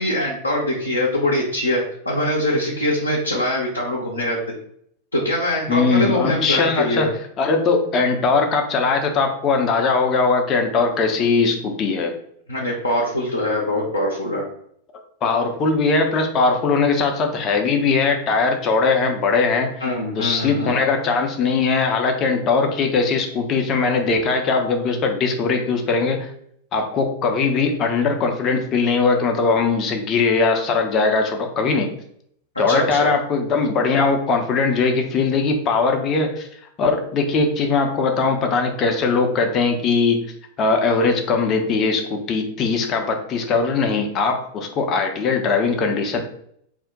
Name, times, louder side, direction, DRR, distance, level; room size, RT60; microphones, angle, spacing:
voice 1, 0.0-4.4 5.1-7.1 12.5-14.5 19.8-20.7 32.7-33.1, left 1 dB, 80° left, -4 dB, 0.5 m, -23 dB
voice 2, 5.7-7.1 7.4-12.1 15.2-19.8 20.2-26.3 26.7-31.9 32.6-36.5 36.8-40.3 40.6-46.2, left 4 dB, 30° left, 4 dB, 0.5 m, -20 dB
2.5 x 2.1 x 3.7 m, 0.67 s
figure-of-eight pair, 90°, 0 cm